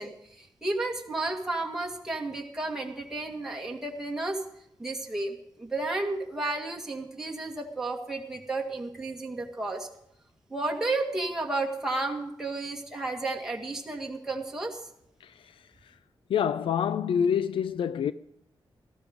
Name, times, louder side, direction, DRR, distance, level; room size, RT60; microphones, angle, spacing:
voice 1, 0.0-4.4 4.8-9.9 10.5-14.8, right 2 dB, 5° right, 1.9 m, -32 dB
voice 2, 15.2-15.9 16.3-18.1, left 8 dB, 85° left, 0.5 m, -27 dB
18.0 x 14.5 x 5.2 m
wide cardioid pair, 160°, 9 cm